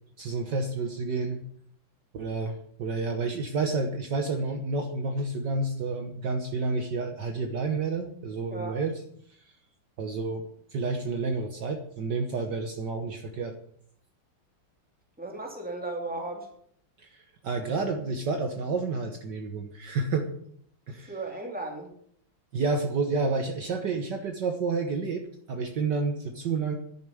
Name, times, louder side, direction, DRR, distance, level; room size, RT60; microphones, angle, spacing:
voice 1, 0.2-1.4 2.1-9.0 9.3-9.5 10.0-13.5 17.0-20.3 20.9-21.2 22.5-26.7, right 3 dB, 60° right, 5 dB, 1.7 m, -30 dB
voice 2, 15.2-16.5 21.1-21.9, right 2 dB, 5° right, 1 dB, 2.6 m, -35 dB
10.5 x 7.1 x 9.2 m, 0.66 s
omnidirectional pair, 2.3 m